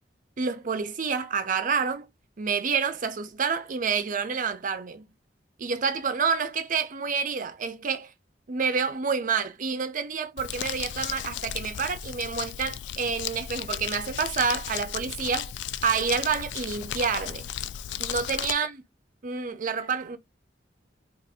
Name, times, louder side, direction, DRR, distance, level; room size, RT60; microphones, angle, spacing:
voice 1, 0.4-2.1 2.4-5.0 5.6-8.1 8.5-15.5 15.8-17.5 18.0-18.8 19.2-20.2, right 5 dB, 45° right, 0.6 m, -28 dB
Crumpling crinkling, 10.4-18.5, left 10 dB, 70° left, 0.3 m, -35 dB
2.6 x 2.5 x 4.1 m
head